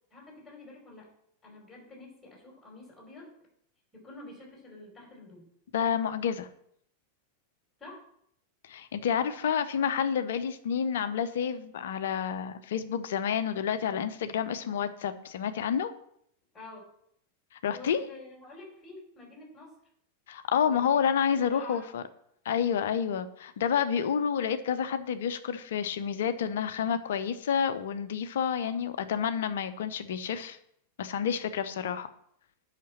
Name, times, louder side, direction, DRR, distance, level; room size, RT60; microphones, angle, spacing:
voice 1, 0.1-1.1 1.4-3.3 3.9-5.5 7.8-8.0 16.5-16.9 17.7-19.7 20.6-21.1 21.4-21.9, left 2 dB, 10° left, -2 dB, 5.2 m, -48 dB
voice 2, 5.7-6.5 8.6-15.9 17.6-18.0 20.3-22.0 22.4-30.6 31.0-32.1, left 8 dB, 60° left, 11 dB, 0.8 m, -29 dB
8.5 x 6.0 x 7.3 m, 0.70 s
figure-of-eight pair, 90°, 0 cm